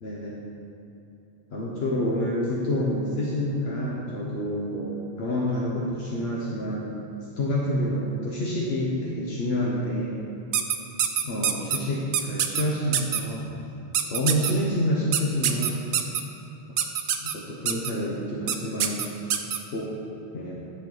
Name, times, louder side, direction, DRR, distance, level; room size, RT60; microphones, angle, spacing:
voice 1, 0.0-0.4 1.5-7.0 7.4-10.3 11.2-13.5 14.1-15.8 17.2-19.0 19.7-19.9 20.3-20.6, left 1 dB, 70° left, -4 dB, 1.1 m, -28 dB
sound 1, 10.5-11.8 12.1-12.6 12.9-13.2 13.9-14.5 15.1-16.2 16.8-17.3 17.7-17.9 18.5-18.6 18.8-19.6, right 9 dB, 60° right, 0.7 m, -24 dB
10.0 x 5.7 x 4.0 m, 3.0 s
omnidirectional pair, 1.1 m